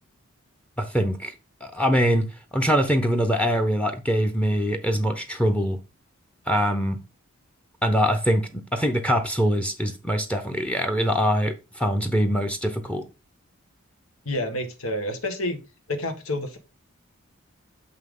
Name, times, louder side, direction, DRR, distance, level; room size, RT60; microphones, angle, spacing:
voice 1, 0.8-1.3 1.6-2.3 2.5-5.8 6.5-7.0 7.8-13.1, equal, 5° left, 0.7 m, -23 dB
voice 2, 14.2-15.6 15.9-16.6, left 1 dB, 85° left, 1.6 m, -29 dB
6.7 x 5.7 x 3.8 m
head